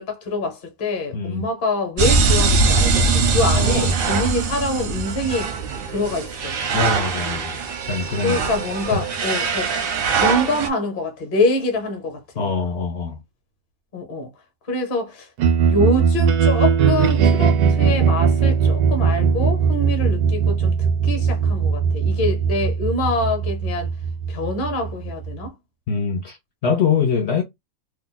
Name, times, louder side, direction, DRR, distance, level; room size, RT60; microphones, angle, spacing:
voice 1, 0.0-5.5 5.9-6.6 8.2-9.8 10.1-12.5 13.9-14.3 14.7-15.3 15.7-23.9 24.3-25.5, left 2 dB, 40° left, 0.9 m, -25 dB
voice 2, 1.1-1.5 3.5-4.0 6.7-7.6 7.9-8.4 8.9-9.1 12.4-13.2 25.9-26.4 26.6-27.4, left 5 dB, 75° left, 0.6 m, -23 dB
sound 1, 2.0-10.7, right 4 dB, 60° right, 0.6 m, -21 dB
sound 2, 15.4-25.5, right 6 dB, 85° right, 1.1 m, -19 dB
2.7 x 2.1 x 3.9 m
omnidirectional pair, 1.6 m